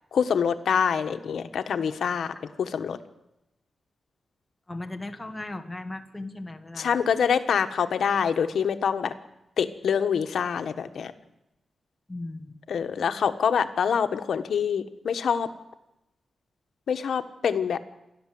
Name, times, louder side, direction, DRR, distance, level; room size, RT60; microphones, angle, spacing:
voice 1, 0.1-3.0 6.8-9.1 9.6-11.1 12.7-15.5 16.9-17.8, left 7 dB, 80° left, 9 dB, 1.3 m, -25 dB
voice 2, 4.7-6.9 12.1-12.6, left 2 dB, 15° left, 5 dB, 1.7 m, -37 dB
28.5 x 12.0 x 7.7 m, 0.90 s
wide cardioid pair, 140°, 0 cm